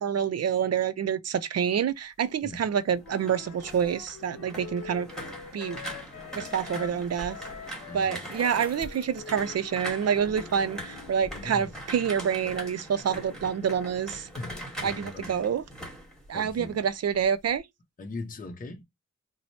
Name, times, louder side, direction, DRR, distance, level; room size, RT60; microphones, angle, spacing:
voice 1, 0.0-5.1 5.5-5.8 6.4-7.4 7.9-14.3 14.8-15.6 16.3-17.7, right 8 dB, 55° right, 0.5 m, -27 dB
sound 1, 2.9-16.9 17.2-17.6, equal, ahead, 1.2 m, -41 dB
Wind instrument woodwind instrument, 3.0-7.0 7.3-11.2, left 8 dB, 70° left, 0.6 m, -45 dB
Bicycle, 5.7-10.2, right 1 dB, 20° right, 0.8 m, -49 dB
voice 2, 7.8-8.2 11.3-11.7 14.4-15.4 16.3-16.8 18.0-18.8, left 2 dB, 30° left, 0.6 m, -40 dB
3.0 x 2.0 x 4.1 m
wide cardioid pair, 155°, 30 cm